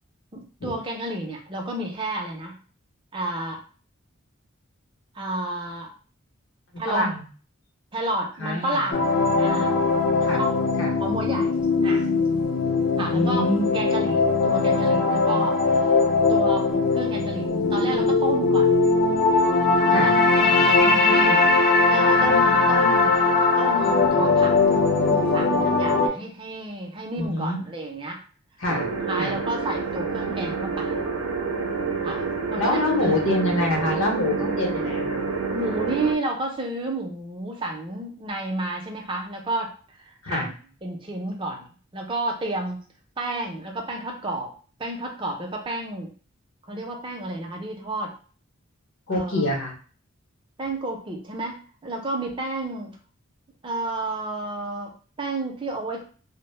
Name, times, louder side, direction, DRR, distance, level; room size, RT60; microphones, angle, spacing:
voice 1, 0.3-2.6 3.1-3.6 5.1-5.9 6.8-7.1 7.9-9.8 10.2-10.6 11.0-11.6 11.8-12.1 13.0-16.0 16.3-18.7 19.9-21.5 21.9-28.2 29.1-31.0 32.0-32.3 32.5-33.2 35.5-40.5 40.8-42.8 43.2-44.5 44.8-46.1 46.7-48.1 49.1-49.6 50.6-53.0 53.6-56.0, right 1 dB, 25° right, 1 dB, 0.4 m, -31 dB
voice 2, 6.7-7.2 8.4-8.9 10.2-10.4 10.8-10.9 13.1-13.8 19.9-20.1 27.2-27.6 28.6-28.9 29.2-29.4 32.6-35.2 40.2-40.5 49.1-49.7, left 1 dB, 70° left, 0 dB, 0.7 m, -26 dB
sound 1, 8.9-26.1, left 3 dB, 45° left, 0.4 m, -20 dB
sound 2, 28.7-36.1, right 4 dB, 80° right, 0.4 m, -28 dB
2.0 x 2.0 x 3.0 m, 0.40 s
head